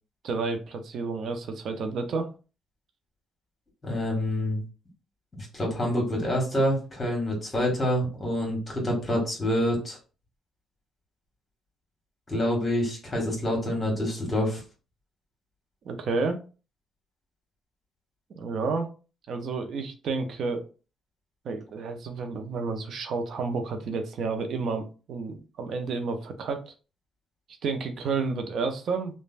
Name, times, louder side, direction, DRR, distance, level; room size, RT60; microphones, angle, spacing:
voice 1, 0.2-2.3 15.8-16.4 18.3-18.9 19.3-20.6 21.4-26.7 27.6-29.2, right 4 dB, 65° right, 6 dB, 0.5 m, -30 dB
voice 2, 3.8-4.6 5.3-10.0 12.3-14.6, left 1 dB, 30° left, -1 dB, 1.4 m, -27 dB
3.2 x 2.1 x 2.5 m, 0.34 s
cardioid pair, 90°, 0 cm